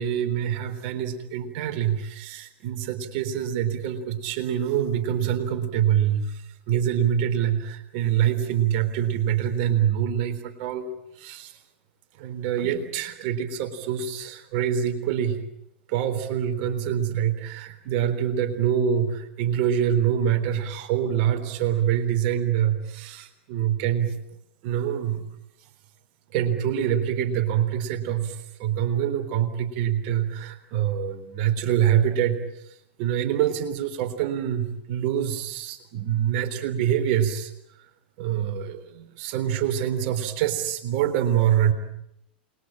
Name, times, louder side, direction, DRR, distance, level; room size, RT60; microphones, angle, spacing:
voice 1, 0.0-10.9 11.2-11.6 12.1-15.4 15.9-24.1 24.6-25.2 26.3-37.5 38.2-41.7, right 9 dB, 50° right, 8 dB, 3.7 m, -25 dB
29.0 x 22.0 x 8.9 m, 0.79 s
figure-of-eight pair, 95°, 6 cm